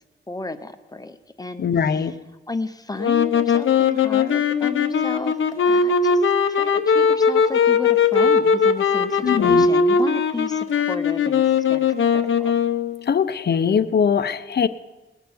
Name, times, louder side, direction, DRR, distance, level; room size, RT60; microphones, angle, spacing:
voice 1, 0.3-2.1 2.5-5.4 5.6-12.5, left 3 dB, 20° left, 8 dB, 0.8 m, -33 dB
voice 2, 1.6-2.1 9.2-9.7 13.1-14.7, left 7 dB, 55° left, 11 dB, 0.7 m, -21 dB
sound 1, 3.0-13.0, left 5 dB, 85° left, 0.9 m, -19 dB
20.0 x 6.9 x 9.4 m, 1.1 s
wide cardioid pair, 140°, 20 cm